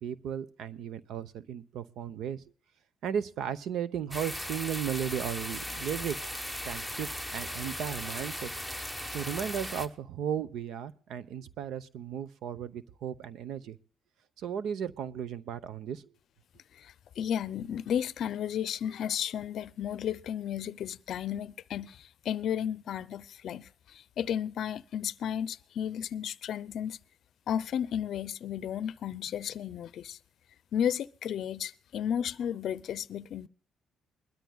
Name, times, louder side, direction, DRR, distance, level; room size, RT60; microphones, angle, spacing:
voice 1, 0.0-2.4 3.0-6.2 6.6-8.5 9.1-13.8 14.4-16.0, right 9 dB, 80° right, 0.8 m, -35 dB
sound 1, 4.1-9.9, equal, 10° right, 1.2 m, -37 dB
voice 2, 16.7-27.0 27.5-30.2 30.7-33.5, left 9 dB, 70° left, 0.5 m, -33 dB
21.5 x 13.0 x 2.3 m
cardioid pair, 90°, 0 cm